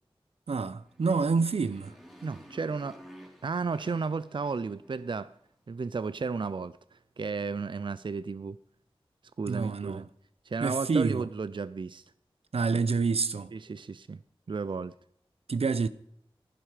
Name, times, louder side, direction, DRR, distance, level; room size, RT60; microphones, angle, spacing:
voice 1, 0.5-1.9 9.5-10.0 10.6-11.3 12.5-13.5 15.5-15.9, right 4 dB, 85° right, 0.7 m, -27 dB
Motorcycle, 0.8-5.4, equal, 5° right, 3.4 m, -52 dB
voice 2, 2.2-3.0 3.4-5.4 5.7-8.6 9.4-10.1 10.4-12.1 13.5-14.2 14.5-14.9, right 4 dB, 55° right, 0.5 m, -33 dB
15.5 x 11.0 x 4.9 m
wide cardioid pair, 75°, 10 cm